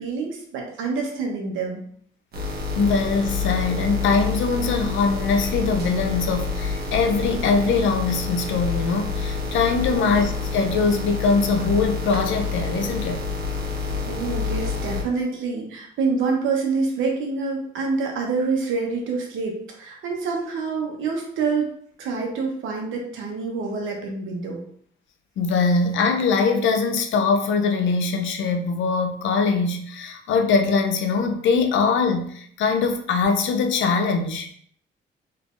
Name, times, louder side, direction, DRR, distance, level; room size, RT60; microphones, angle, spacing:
voice 1, 0.0-1.8 9.8-10.1 13.8-21.7 22.0-24.6, right 4 dB, 80° right, 1 dB, 0.9 m, -27 dB
sound 1, 2.3-15.0, left 4 dB, 55° right, 1.0 m, -28 dB
voice 2, 2.8-13.2 25.4-34.5, left 4 dB, 75° left, 5 dB, 0.6 m, -22 dB
3.5 x 3.2 x 2.5 m, 0.62 s
cardioid pair, 90°, 20 cm